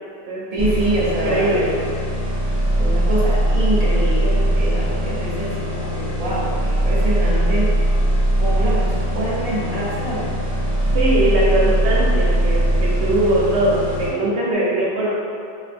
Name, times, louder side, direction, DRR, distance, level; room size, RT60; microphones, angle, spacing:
voice 1, 0.5-1.5 2.8-7.7 8.4-10.3, right 1 dB, 40° right, -8 dB, 0.9 m, -25 dB
sound 1, 0.6-14.1, right 1 dB, 15° right, 1.3 m, -20 dB
voice 2, 1.2-1.7 10.9-15.1, right 1 dB, 90° right, -4 dB, 0.9 m, -20 dB
4.4 x 2.5 x 2.5 m, 2.3 s
omnidirectional pair, 1.1 m